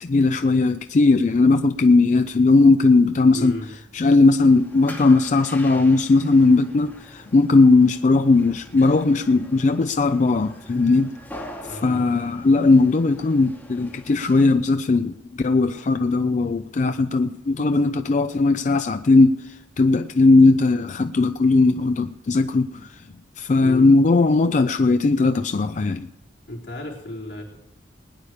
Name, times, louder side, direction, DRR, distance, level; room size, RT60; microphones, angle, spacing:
voice 1, 0.0-3.5 3.9-11.2 11.7-23.1 23.4-26.1, left 3 dB, 45° left, 0.4 m, -18 dB
voice 2, 3.3-3.7 11.7-12.0 23.6-23.9 26.5-27.6, left 1 dB, 75° left, 3.7 m, -34 dB
sound 1, 4.4-14.5, left 1 dB, 10° left, 2.6 m, -43 dB
20.5 x 9.9 x 5.0 m
head